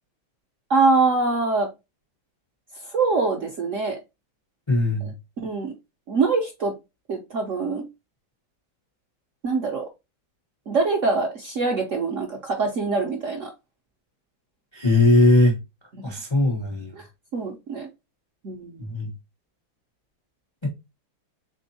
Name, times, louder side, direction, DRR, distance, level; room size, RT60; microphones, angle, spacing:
voice 1, 0.7-1.7 2.8-4.0 5.4-5.7 6.1-6.7 7.1-7.8 9.4-9.8 10.7-13.5 15.9-16.0 16.9-17.1 17.3-17.9 18.4-18.8, right 4 dB, 60° right, 0.8 m, -24 dB
voice 2, 4.7-5.1 14.7-15.6 16.0-16.9 18.8-19.1 20.6-20.7, left 2 dB, 45° left, 0.3 m, -19 dB
3.8 x 3.5 x 2.6 m
omnidirectional pair, 2.1 m